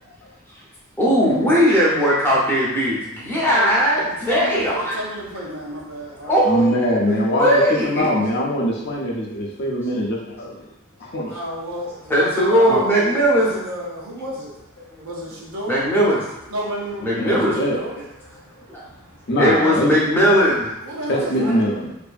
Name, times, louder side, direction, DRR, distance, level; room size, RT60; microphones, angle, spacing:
voice 1, 1.0-4.9 6.2-8.1 12.1-13.5 15.7-16.2 17.0-17.6 18.7-18.8 19.4-20.6, equal, 10° left, -7 dB, 0.6 m, -18 dB
voice 2, 3.5-6.7 11.3-15.8 16.5-19.3 20.3-20.5 20.8-21.6, equal, 90° right, -3 dB, 0.7 m, -32 dB
voice 3, 6.4-10.6 11.0-11.3 12.7-12.8 17.1-17.8 19.3-20.0 21.1-21.9, equal, 50° left, -2 dB, 0.5 m, -22 dB
2.6 x 2.6 x 2.4 m, 0.85 s
head